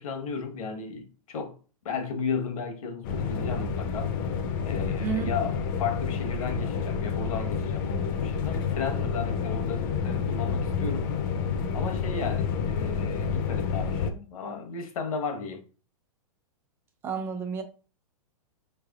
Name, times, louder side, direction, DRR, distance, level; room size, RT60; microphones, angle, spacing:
voice 1, 0.0-1.6 1.8-4.2 4.6-11.1 11.7-15.6, left 5 dB, 70° left, 1.1 m, -34 dB
sound 1, 3.0-14.1, left 6 dB, 35° left, 0.5 m, -29 dB
voice 2, 5.0-5.3 17.0-17.6, right 7 dB, 10° right, 0.3 m, -30 dB
5.3 x 3.3 x 2.3 m
hypercardioid pair, 155°, 19 cm